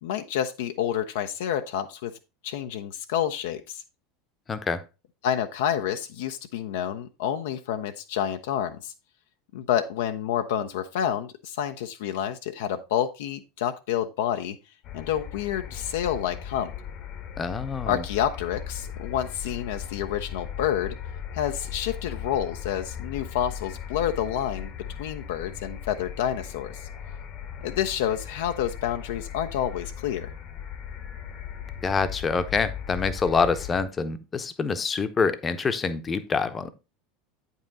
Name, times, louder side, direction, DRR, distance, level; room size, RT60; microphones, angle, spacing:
voice 1, 0.0-2.1 2.4-3.8 5.2-8.9 9.5-14.6 14.9-16.7 17.8-21.0 21.3-24.7 25.0-26.8 27.6-30.3, left 10 dB, 60° left, 7 dB, 0.5 m, -29 dB
voice 2, 4.5-4.8 17.4-18.0 31.8-36.7, left 5 dB, 25° left, 11 dB, 0.8 m, -26 dB
sound 1, 14.8-33.8, left 8 dB, 45° left, 1.0 m, -38 dB
8.9 x 5.5 x 3.8 m, 0.27 s
figure-of-eight pair, 75°, 0 cm